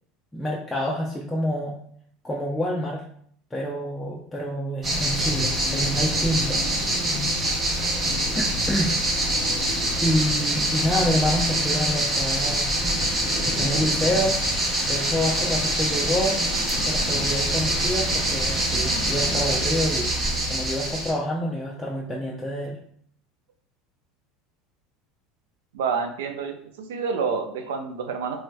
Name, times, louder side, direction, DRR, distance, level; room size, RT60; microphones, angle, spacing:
voice 1, 0.3-1.7 2.2-3.0 3.5-6.6 8.0-9.0 10.0-12.7 13.6-14.4 14.8-16.4 16.8-20.1 20.4-22.8, equal, 10° left, -4 dB, 0.5 m, -27 dB
sound 1, 4.8-21.1, right 1 dB, 30° right, 0.9 m, -24 dB
voice 2, 25.7-28.4, right 5 dB, 90° right, 6 dB, 0.4 m, -28 dB
3.1 x 3.1 x 2.2 m, 0.63 s
supercardioid pair, 110°, 0 cm